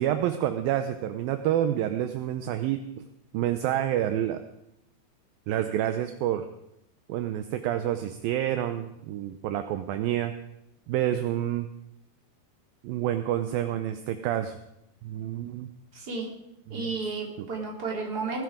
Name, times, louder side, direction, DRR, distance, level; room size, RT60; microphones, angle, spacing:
voice 1, 0.0-2.8 3.3-4.4 5.5-6.5 7.1-10.3 10.9-11.7 12.8-14.6 15.0-15.7 16.7-16.9 17.4-17.5, right 11 dB, 75° right, 8 dB, 2.3 m, -28 dB
voice 2, 15.9-16.3 16.7-18.4, right 4 dB, 25° right, -1 dB, 3.6 m, -32 dB
19.5 x 13.0 x 5.1 m, 0.82 s
omnidirectional pair, 4.9 m